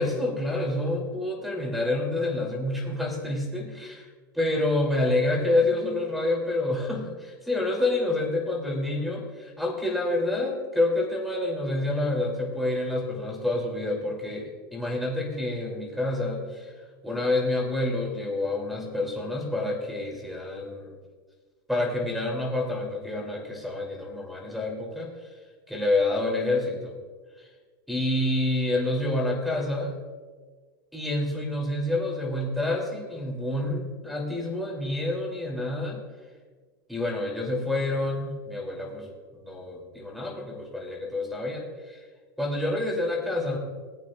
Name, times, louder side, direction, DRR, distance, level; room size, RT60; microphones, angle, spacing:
voice 1, 0.0-4.1 4.3-16.7 17.0-20.9 21.7-25.3 25.7-26.9 27.4-27.5 27.9-29.9 30.9-36.0 36.9-39.1 39.3-42.0 42.4-43.6, left 2 dB, ahead, 0 dB, 3.2 m, -28 dB
20.0 x 8.6 x 2.5 m, 1.5 s
supercardioid pair, 135°, 12 cm